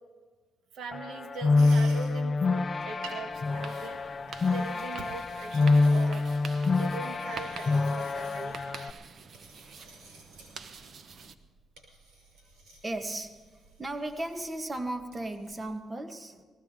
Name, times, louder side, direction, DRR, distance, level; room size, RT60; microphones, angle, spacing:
voice 1, 0.7-4.0 4.5-6.3 6.8-8.6, right 4 dB, 70° right, 1.2 m, -41 dB
sound 1, 0.9-8.9, left 3 dB, 35° left, 0.5 m, -26 dB
sound 2, 1.5-15.7, right 3 dB, 85° right, 6.0 m, -54 dB
sound 3, 3.3-11.3, right 5 dB, 50° right, 1.0 m, -47 dB
voice 2, 12.8-16.4, right 1 dB, 20° right, 1.3 m, -36 dB
20.0 x 15.5 x 3.7 m
cardioid pair, 90°, 0 cm